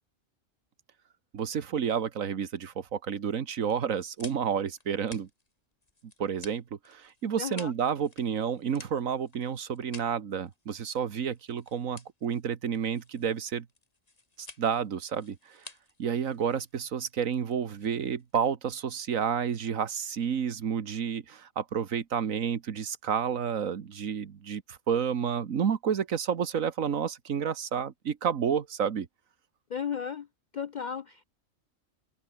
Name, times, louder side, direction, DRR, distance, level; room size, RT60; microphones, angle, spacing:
voice 1, 1.3-5.3 6.2-13.6 14.4-15.7 16.0-29.1, right 7 dB, 85° right, 1.7 m, -30 dB
sound 1, 3.6-18.3, left 3 dB, 30° left, 2.1 m, -52 dB
voice 2, 7.4-7.7 29.7-30.3 30.5-31.2, left 7 dB, 65° left, 0.4 m, -34 dB
omnidirectional pair, 1.4 m